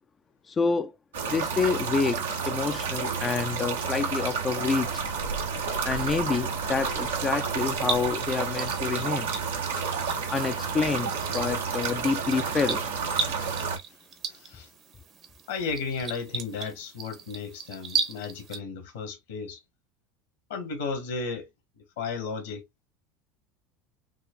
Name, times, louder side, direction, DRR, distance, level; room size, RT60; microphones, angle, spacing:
voice 1, 0.5-0.9 1.3-4.9 5.8-9.3 10.3-12.8, left 5 dB, 25° left, 0.4 m, -28 dB
sound 1, 1.1-13.8, right 5 dB, 85° right, 1.2 m, -30 dB
sound 2, 7.0-18.6, right 5 dB, 45° right, 1.0 m, -37 dB
voice 2, 14.3-14.7 15.5-19.6 20.5-21.5 22.0-22.6, left 5 dB, 80° left, 1.8 m, -34 dB
6.1 x 2.5 x 2.4 m
hypercardioid pair, 80°, 0 cm